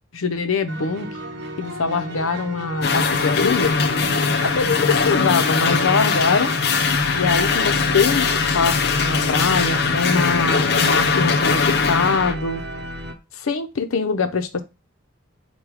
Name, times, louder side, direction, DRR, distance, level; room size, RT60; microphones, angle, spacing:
voice 1, 0.1-1.1 1.6-3.8 4.4-6.5 7.1-12.6 13.4-14.6, left 4 dB, 90° left, 0.6 m, -23 dB
sound 1, 0.7-13.1, right 1 dB, 55° right, 0.8 m, -33 dB
sound 2, 2.8-12.3, left 5 dB, 50° left, 0.5 m, -20 dB
4.8 x 2.3 x 4.8 m
head